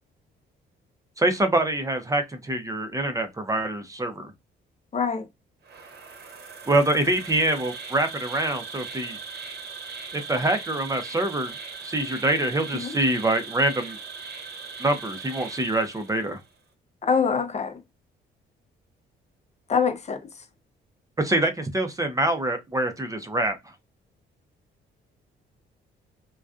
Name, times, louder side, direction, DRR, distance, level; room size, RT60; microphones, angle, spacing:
voice 1, 1.2-4.3 6.7-9.2 10.1-11.5 11.8-14.0 14.8-16.4 21.2-23.6, right 1 dB, 15° right, 0.5 m, -25 dB
voice 2, 4.9-5.3 12.7-12.9 17.0-17.8 19.7-20.2, left 6 dB, 35° left, 0.5 m, -24 dB
Insect, 5.6-16.4, right 5 dB, 55° right, 0.8 m, -39 dB
2.5 x 2.2 x 2.3 m
cardioid pair, 90°, 20 cm